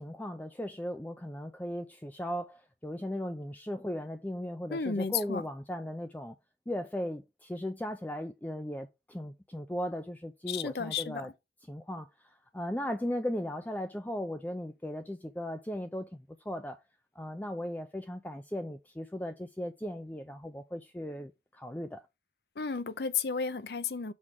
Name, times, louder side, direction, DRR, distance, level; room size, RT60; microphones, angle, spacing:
voice 1, 0.0-6.3 6.7-11.3 11.7-16.8 17.2-22.0, left 1 dB, 10° left, 0.4 m, -37 dB
voice 2, 4.7-5.4 10.5-11.3 22.6-24.1, left 5 dB, 60° left, 0.6 m, -33 dB
6.3 x 3.6 x 4.8 m
head